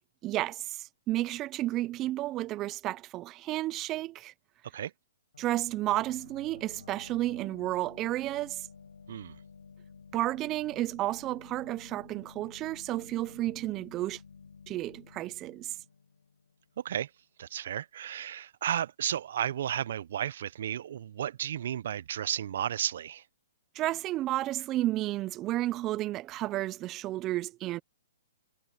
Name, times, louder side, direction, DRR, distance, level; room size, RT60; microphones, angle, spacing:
voice 1, 0.2-4.3 5.4-8.7 10.1-14.2 14.7-15.8 23.7-27.8, right 15 dB, 25° right, 0.8 m, -32 dB
sound 1, 5.3-16.8, left 5 dB, 80° left, 5.1 m, -53 dB
voice 2, 16.8-17.1 17.4-23.2, right 10 dB, 60° right, 0.9 m, -33 dB
hypercardioid pair, 130°, 0 cm